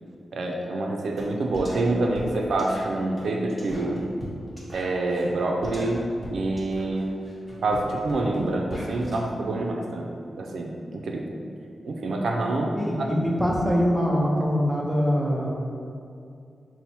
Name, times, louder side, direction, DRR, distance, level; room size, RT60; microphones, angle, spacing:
voice 1, 0.3-4.0 4.7-6.0 6.3-7.1 7.6-10.1 10.3-11.2 11.8-13.1, right 2 dB, 75° right, 1 dB, 0.4 m, -26 dB
sound 1, 1.2-1.3 1.5-9.2, equal, 20° left, 1.0 m, -41 dB
voice 2, 12.7-15.5, equal, ahead, -3 dB, 0.6 m, -23 dB
4.1 x 2.0 x 4.3 m, 2.5 s
wide cardioid pair, 115°, 0 cm